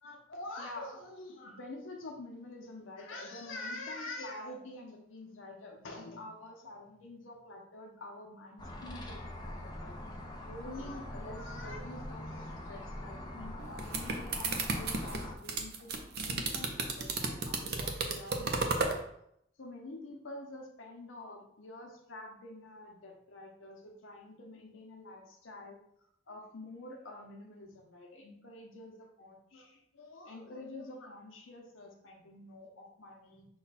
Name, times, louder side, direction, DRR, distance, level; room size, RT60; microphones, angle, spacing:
voice 1, 0.0-10.0 10.5-15.9 16.2-19.0 19.6-33.5, left 2 dB, 85° left, 0 dB, 0.8 m, -47 dB
sound 1, 8.6-15.4, left 1 dB, 20° left, 0.6 m, -43 dB
sound 2, 13.6-19.0, right 3 dB, 55° right, 0.6 m, -33 dB
5.6 x 2.3 x 4.0 m, 0.74 s
head